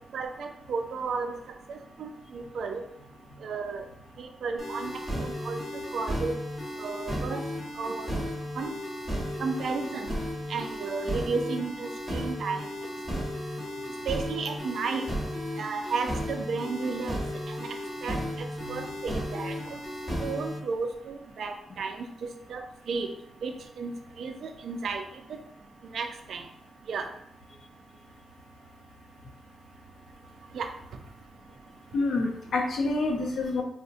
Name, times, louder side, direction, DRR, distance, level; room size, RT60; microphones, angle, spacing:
voice 1, 0.1-1.3 1.7-2.8 3.4-3.8 4.2-4.9 5.2-5.6 5.9-6.3 6.8-7.4 7.8-8.2 8.6-8.8 9.4-10.1 10.5-12.7 14.1-15.0 15.6-17.2 17.5-17.6 18.0-19.6 20.2-22.1 22.5-23.1 23.4-23.9 24.2-25.0 25.9-26.4 26.9-27.1 30.5-30.7, right 4 dB, 70° right, 6 dB, 0.3 m, -33 dB
sound 1, 4.6-20.6, equal, ahead, 1.0 m, -34 dB
voice 2, 31.9-33.6, left 3 dB, 60° left, 2 dB, 0.5 m, -28 dB
3.8 x 2.1 x 2.5 m, 0.71 s
wide cardioid pair, 140°, 0 cm